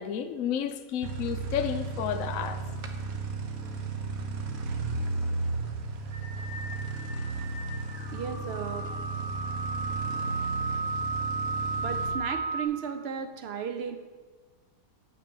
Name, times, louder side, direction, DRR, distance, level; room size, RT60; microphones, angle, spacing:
voice 1, 0.0-2.6, left 9 dB, 65° left, 7 dB, 0.8 m, -31 dB
sound 1, 1.0-12.1, right 3 dB, 55° right, 1.2 m, -34 dB
sound 2, 6.1-12.6, right 4 dB, 30° right, 1.5 m, -34 dB
voice 2, 8.1-8.9 11.8-14.0, right 7 dB, 70° right, 7 dB, 0.6 m, -34 dB
8.8 x 6.7 x 6.8 m, 1.4 s
omnidirectional pair, 2.0 m